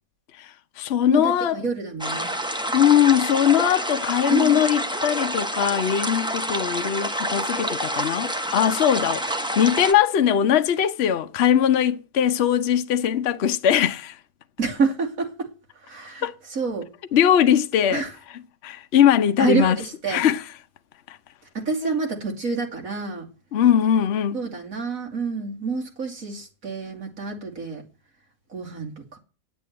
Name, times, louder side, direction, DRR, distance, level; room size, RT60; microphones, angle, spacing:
voice 1, 0.4-1.6 2.7-14.2 16.2-16.4 17.1-19.8 20.1-20.5 21.8-21.9 23.5-24.4, left 9 dB, 50° left, 0.8 m, -21 dB
voice 2, 1.1-2.3 4.3-4.6 14.6-15.5 15.9-16.3 16.6-16.9 17.9-18.1 19.4-20.2 21.5-23.2 24.3-27.8 28.5-28.9, right 4 dB, 55° right, 2.9 m, -27 dB
sound 1, 2.0-9.9, right 1 dB, 5° right, 0.6 m, -28 dB
9.3 x 8.4 x 9.5 m
omnidirectional pair, 1.7 m